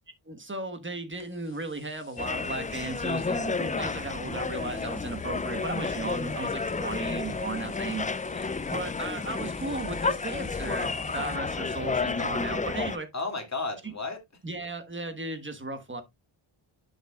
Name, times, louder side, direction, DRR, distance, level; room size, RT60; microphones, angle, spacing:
voice 1, 0.3-8.1 8.7-13.1 14.4-16.0, right 3 dB, 25° right, 1.4 m, -35 dB
sound 1, 1.1-11.4, left 5 dB, 60° left, 1.7 m, -54 dB
sound 2, 2.2-13.0, left 4 dB, 20° left, 0.3 m, -31 dB
voice 2, 7.2-7.6 8.3-8.5 13.1-14.2, left 3 dB, 35° left, 2.4 m, -34 dB
11.0 x 5.7 x 2.3 m
wide cardioid pair, 100°, 49 cm